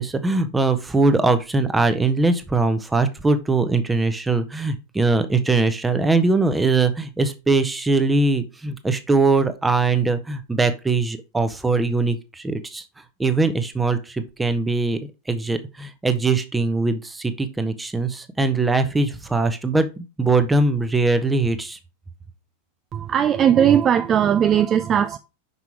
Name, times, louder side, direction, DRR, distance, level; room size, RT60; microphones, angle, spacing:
voice 1, 0.0-12.8 13.2-15.0 15.3-21.8, right 3 dB, 10° right, 0.9 m, -21 dB
voice 2, 22.9-25.2, right 9 dB, 25° right, 0.4 m, -18 dB
6.0 x 5.4 x 4.6 m
figure-of-eight pair, 90°, 0 cm